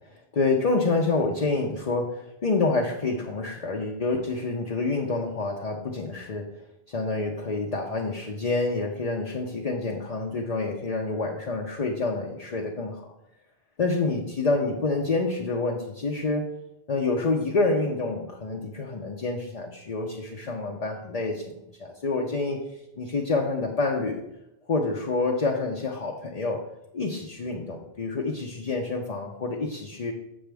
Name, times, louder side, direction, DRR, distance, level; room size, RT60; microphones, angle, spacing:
voice 1, 0.1-6.5 6.9-13.1 13.8-16.5 16.9-22.6 23.0-24.2 24.7-26.6 26.9-30.1, left 3 dB, 40° left, 0 dB, 0.8 m, -27 dB
7.5 x 7.1 x 3.4 m, 0.86 s
omnidirectional pair, 1.1 m